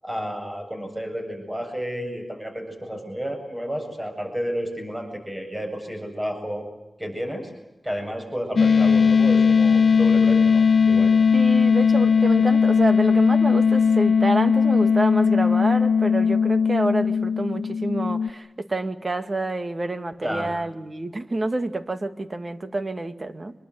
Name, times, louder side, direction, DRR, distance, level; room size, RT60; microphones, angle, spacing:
voice 1, 0.0-6.7 7.0-7.5 7.8-11.1 20.2-20.5, equal, 15° right, 4 dB, 7.8 m, -31 dB
sound 1, 8.6-18.3, left 6 dB, 70° left, 1.1 m, -18 dB
voice 2, 11.3-23.5, right 2 dB, 40° right, 9 dB, 2.1 m, -28 dB
27.0 x 22.5 x 9.4 m, 0.95 s
wide cardioid pair, 80°, 0 cm